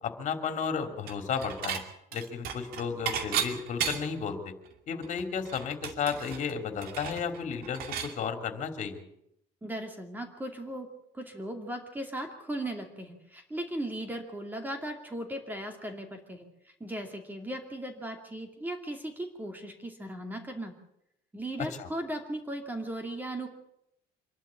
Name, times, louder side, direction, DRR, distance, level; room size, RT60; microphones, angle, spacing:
voice 1, 0.0-1.8 2.1-4.5 4.9-9.0 21.6-21.9, left 6 dB, 45° left, 6 dB, 3.2 m, -33 dB
Dishes pots and pans / Chink clink, 1.1-1.8 2.1-4.2 4.7-4.8 5.0-8.1, right 8 dB, 65° right, 2.5 m, -34 dB
voice 2, 9.6-10.9 11.1-20.7 21.3-23.5, right 1 dB, 10° right, 4 dB, 2.5 m, -37 dB
25.5 x 12.0 x 8.6 m, 0.77 s
cardioid pair, 145°, 17 cm